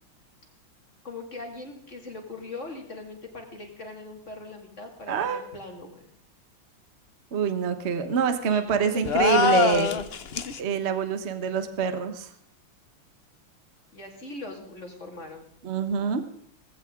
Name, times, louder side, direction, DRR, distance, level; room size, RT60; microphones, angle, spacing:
voice 1, 1.0-6.1 8.5-10.1 13.9-15.5, left 2 dB, 35° left, 2 dB, 2.5 m, -41 dB
voice 2, 5.1-5.4 7.3-9.9 10.6-12.3 15.6-16.2, right 6 dB, 40° right, 9 dB, 1.2 m, -25 dB
sound 1, 9.1-10.6, left 6 dB, 85° left, 0.5 m, -23 dB
18.5 x 15.5 x 3.8 m, 0.63 s
omnidirectional pair, 2.3 m